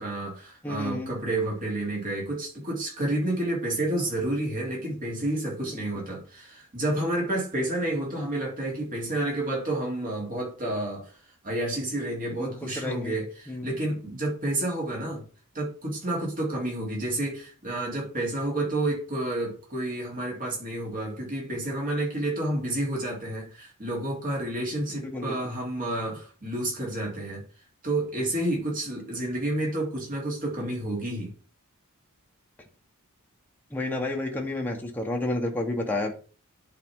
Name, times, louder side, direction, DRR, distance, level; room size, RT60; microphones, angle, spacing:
voice 1, 0.0-11.1 11.4-15.2 15.5-27.4 27.8-31.3, right 1 dB, 40° right, -2 dB, 3.5 m, -30 dB
voice 2, 0.6-1.2 5.6-5.8 12.4-13.2 13.5-13.7 24.9-25.3 33.7-36.1, left 2 dB, 10° left, 0 dB, 1.2 m, -31 dB
10.5 x 4.9 x 3.8 m, 0.38 s
head